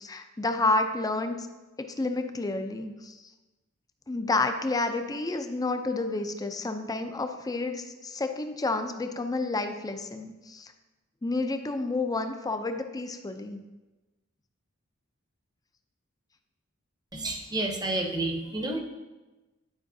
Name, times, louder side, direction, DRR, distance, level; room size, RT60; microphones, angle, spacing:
voice 1, 0.0-1.5 1.8-3.2 4.1-10.7 11.2-13.6, left 2 dB, 15° left, 6 dB, 0.5 m, -30 dB
voice 2, 17.1-18.8, right 2 dB, 20° right, 2 dB, 0.8 m, -30 dB
10.0 x 4.9 x 2.7 m, 1.1 s
head